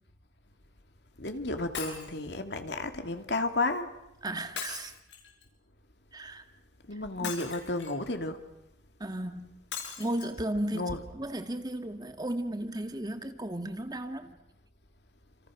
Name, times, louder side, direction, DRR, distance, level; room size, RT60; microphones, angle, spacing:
voice 1, 1.2-3.9 6.9-8.4 10.1-10.2 10.7-11.1, left 2 dB, 70° left, 2.7 m, -32 dB
Shatter, 1.7-2.2 4.6-5.4 7.2-8.0 9.7-10.3 10.9-11.0 11.3-11.4, left 6 dB, 85° left, 7.3 m, -39 dB
voice 2, 4.2-4.9 6.1-6.4 7.2-7.3 9.0-9.5 10.0-10.8 11.1-14.4, right 1 dB, 20° right, 1.8 m, -34 dB
29.5 x 29.0 x 6.5 m
head